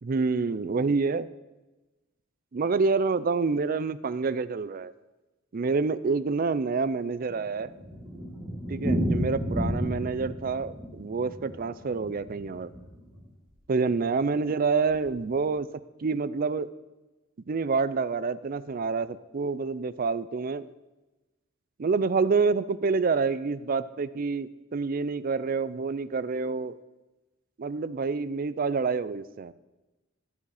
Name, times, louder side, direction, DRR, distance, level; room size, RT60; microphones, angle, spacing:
voice 1, 0.0-1.3 2.5-4.9 5.5-7.7 8.7-12.7 13.7-15.7 16.0-16.7 17.5-20.7 21.8-26.7 27.6-29.5, right 4 dB, 50° right, 15 dB, 0.5 m, -27 dB
Thunder, 6.9-13.2 13.5-13.6 13.9-14.0 14.2-14.3 14.9-15.2, equal, 5° right, 3.4 m, -32 dB
12.5 x 8.3 x 4.9 m, 1.1 s
head